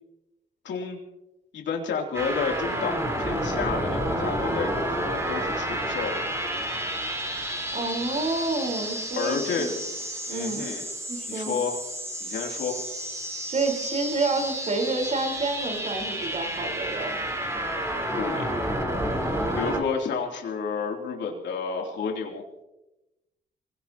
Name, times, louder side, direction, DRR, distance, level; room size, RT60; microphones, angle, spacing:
voice 1, 0.6-1.0 1.5-6.2 9.2-9.8 10.3-10.8 11.3-11.8 12.2-12.8 18.1-18.5 19.6-22.4, left 5 dB, 80° left, 0 dB, 3.1 m, -30 dB
sound 1, 2.1-19.8, right 1 dB, 15° right, 4.4 m, -30 dB
voice 2, 7.7-9.7 10.3-10.7 11.1-11.6 13.5-17.2, right 3 dB, 40° right, 3 dB, 4.5 m, -29 dB
25.5 x 18.0 x 3.0 m, 0.96 s
cardioid pair, 105°, 19 cm